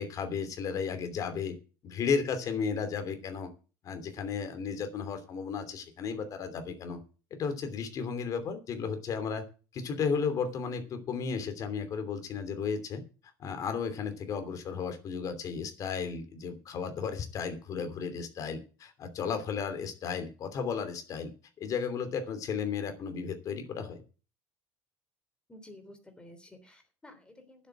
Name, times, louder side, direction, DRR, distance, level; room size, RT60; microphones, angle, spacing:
voice 1, 0.0-1.5 1.8-3.5 3.8-7.0 7.3-9.4 9.7-13.0 13.4-21.3 21.6-24.0, left 6 dB, 45° left, 8 dB, 3.0 m, -34 dB
voice 2, 25.5-27.7, left 1 dB, 10° left, 7 dB, 3.4 m, -52 dB
10.0 x 8.2 x 7.9 m, 0.36 s
cardioid pair, 135°, 8 cm